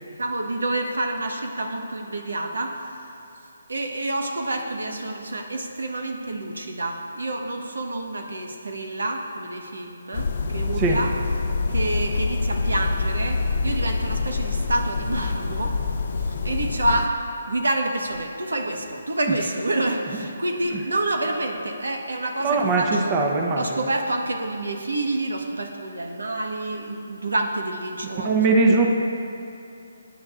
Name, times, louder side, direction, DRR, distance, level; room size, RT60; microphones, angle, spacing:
voice 1, 0.2-2.8 3.7-11.1 11.7-15.8 16.2-17.2 17.5-23.1 23.6-28.8, right 2 dB, 85° right, 3 dB, 1.3 m, -28 dB
sound 1, 10.1-17.1, left 4 dB, 50° left, 0.6 m, -26 dB
voice 2, 22.4-23.7 28.2-28.9, right 3 dB, 25° right, 1 dB, 0.9 m, -20 dB
19.5 x 9.3 x 2.5 m, 2.8 s
hypercardioid pair, 155°, 0 cm